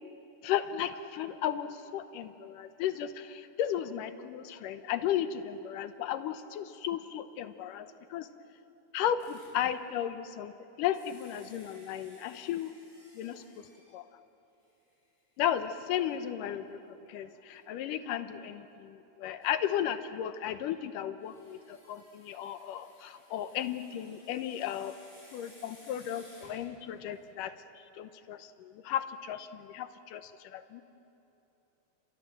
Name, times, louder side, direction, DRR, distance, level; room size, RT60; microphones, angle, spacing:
voice 1, 0.4-8.3 8.9-10.5 10.8-12.7 13.1-13.7 13.9-14.0 15.4-25.0 25.3-27.5 27.9-30.8, left 10 dB, 85° left, 11 dB, 2.5 m, -35 dB
sound 1, 9.2-9.6 10.9-14.0 14.6-14.7 15.2-15.3 17.5-17.6 19.4-19.5 21.2-27.4, equal, 15° left, 7.8 m, -59 dB
29.5 x 25.5 x 7.7 m, 3.0 s
omnidirectional pair, 3.8 m